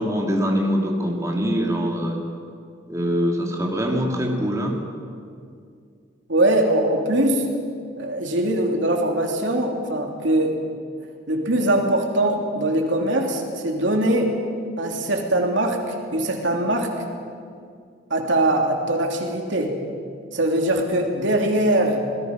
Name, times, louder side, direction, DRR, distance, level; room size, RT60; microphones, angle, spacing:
voice 1, 0.0-2.2 2.9-4.8, equal, 15° right, 0 dB, 2.5 m, -23 dB
voice 2, 6.3-7.4 8.0-10.5 11.3-14.3 14.8-16.9 18.1-19.8 20.3-22.0, right 1 dB, 85° right, 2 dB, 3.0 m, -22 dB
26.5 x 19.0 x 6.0 m, 2.3 s
head